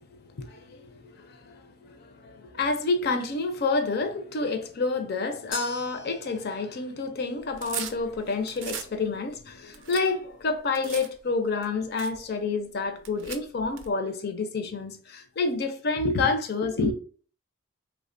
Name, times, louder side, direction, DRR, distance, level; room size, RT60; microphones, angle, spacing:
voice 1, 0.0-16.9, left 3 dB, 50° left, 0.4 m, -29 dB
sound 1, 5.5-13.9, left 2 dB, 90° left, 1.0 m, -47 dB
sound 2, 7.4-8.9 9.4-11.1 11.6-11.7 12.0-12.2 13.0-13.9, right 8 dB, 65° right, 0.4 m, -38 dB
3.1 x 2.1 x 2.5 m
head